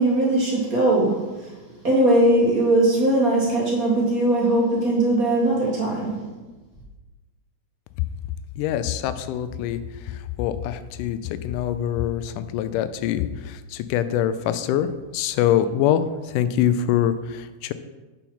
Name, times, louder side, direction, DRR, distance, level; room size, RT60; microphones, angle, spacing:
voice 1, 0.0-1.5 1.8-6.3, right 1 dB, 35° right, -4 dB, 1.7 m, -20 dB
voice 2, 8.6-9.8 10.1-16.0 16.3-17.7, left 10 dB, 80° left, 12 dB, 2.0 m, -24 dB
7.2 x 5.6 x 5.6 m, 1.2 s
omnidirectional pair, 3.8 m